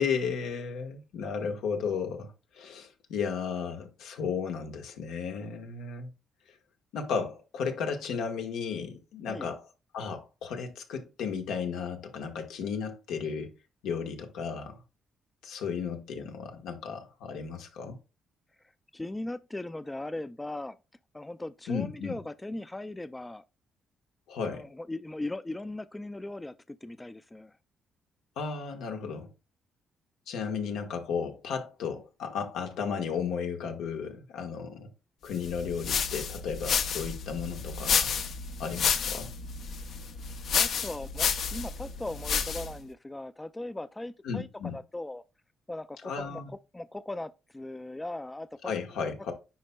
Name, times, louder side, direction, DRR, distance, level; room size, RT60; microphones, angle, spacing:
voice 1, 0.0-6.1 6.5-6.6 6.9-9.6 9.9-13.5 13.8-14.8 15.4-18.0 21.7-22.2 24.3-24.7 28.4-29.3 30.3-34.9 35.2-38.1 38.6-39.3 44.2-44.8 46.0-46.5 48.6-49.3, left 6 dB, 85° left, 1.3 m, -34 dB
voice 2, 18.9-20.8 21.1-23.4 24.5-27.5 40.5-45.2 45.7-46.4 46.7-48.7, left 2 dB, 15° left, 0.3 m, -38 dB
sound 1, 35.4-42.8, left 6 dB, 65° left, 0.7 m, -30 dB
10.0 x 4.2 x 2.2 m
cardioid pair, 90°, 0 cm